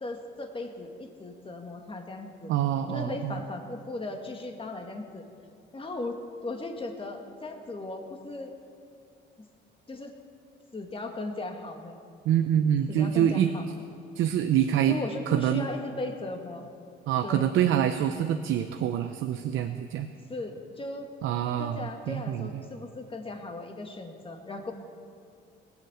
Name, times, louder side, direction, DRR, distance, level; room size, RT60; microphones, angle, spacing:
voice 1, 0.0-2.5 2.9-5.2 5.7-8.5 9.9-10.1 10.7-12.0 12.9-13.6 14.9-16.7 17.2-17.5 20.3-21.1 21.6-24.7, left 2 dB, 25° left, 3 dB, 1.9 m, -37 dB
voice 2, 2.5-3.3 12.2-13.5 14.2-15.0 15.3-15.7 17.1-20.1 21.2-22.6, right 10 dB, 85° right, 8 dB, 0.6 m, -26 dB
19.0 x 7.3 x 8.0 m, 2.4 s
cardioid pair, 90°, 20 cm